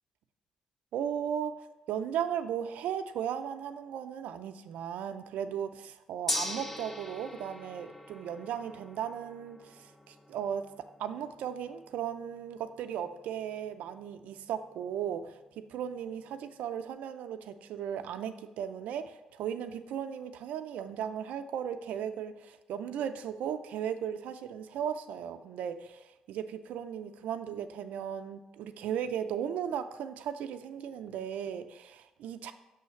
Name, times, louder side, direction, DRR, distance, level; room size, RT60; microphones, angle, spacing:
voice 1, 0.9-1.5 1.9-10.7 11.0-15.4 15.7-32.5, right 9 dB, 80° right, 10 dB, 0.4 m, -36 dB
Gong, 6.3-16.5, left 1 dB, 10° left, 0.7 m, -43 dB
6.2 x 3.2 x 5.7 m, 1.1 s
supercardioid pair, 60°, 2 cm